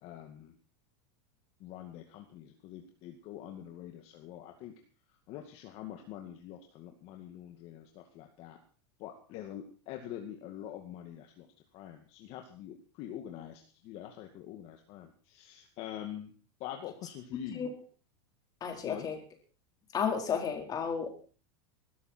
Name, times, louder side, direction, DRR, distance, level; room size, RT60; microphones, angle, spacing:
voice 1, 0.0-0.5 1.6-4.7 5.3-8.6 9.0-11.5 11.7-16.3 16.6-17.7 18.8-19.1, left 11 dB, 45° left, 4 dB, 2.2 m, -45 dB
voice 2, 18.6-19.2 19.9-21.1, left 7 dB, 25° left, 3 dB, 4.4 m, -32 dB
20.5 x 13.0 x 4.5 m, 0.39 s
supercardioid pair, 140°, 14 cm